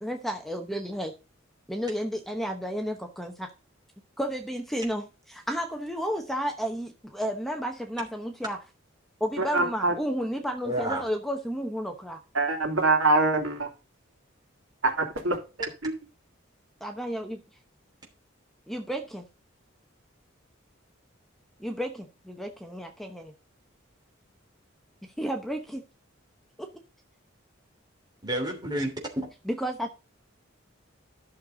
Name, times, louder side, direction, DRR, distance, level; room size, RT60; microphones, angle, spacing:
voice 1, 0.0-1.1 1.7-3.5 4.2-8.6 9.2-12.2 16.8-17.4 18.7-19.2 21.6-23.3 25.0-25.8 26.6-26.7 29.5-29.9, equal, ahead, 5 dB, 0.9 m, -32 dB
voice 2, 9.4-9.9 12.3-13.7 14.8-15.9, right 2 dB, 80° right, 3 dB, 2.7 m, -25 dB
voice 3, 10.6-11.0 28.2-29.3, right 1 dB, 20° right, 1 dB, 3.0 m, -30 dB
11.5 x 6.6 x 3.9 m, 0.31 s
head